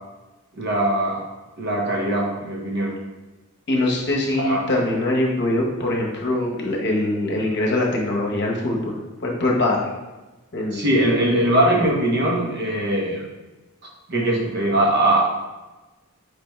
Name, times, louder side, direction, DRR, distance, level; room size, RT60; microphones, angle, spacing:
voice 1, 0.6-1.3 1.6-2.9 4.4-4.6 10.7-13.2 14.1-15.3, right 1 dB, 50° right, -1 dB, 0.9 m, -21 dB
voice 2, 3.7-8.9 9.2-9.8 10.5-10.9 11.2-11.3 11.7-11.8, left 1 dB, 50° left, -1 dB, 0.9 m, -23 dB
4.8 x 3.4 x 3.1 m, 1.1 s
head